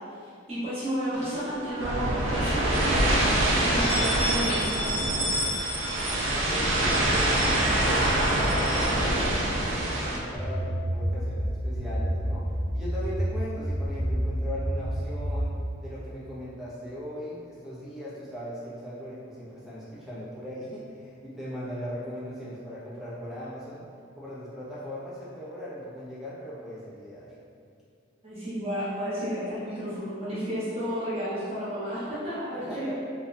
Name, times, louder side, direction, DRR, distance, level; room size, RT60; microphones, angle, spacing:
voice 1, 0.2-3.1 3.4-4.9 28.2-33.0, equal, 30° right, -11 dB, 0.8 m, -32 dB
sound 1, 1.1-1.9 2.2-8.9, equal, 35° left, 0.9 m, -32 dB
sound 2, 1.8-10.2, right 1 dB, 75° right, 0.4 m, -25 dB
voice 2, 6.3-9.4 9.8-12.4 12.7-15.5 15.8-23.8 24.2-27.3 32.5-33.0, equal, ahead, -9 dB, 0.4 m, -38 dB
sound 3, 10.4-15.6, equal, 80° left, 0.7 m, -29 dB
2.6 x 2.1 x 2.5 m, 2.3 s
head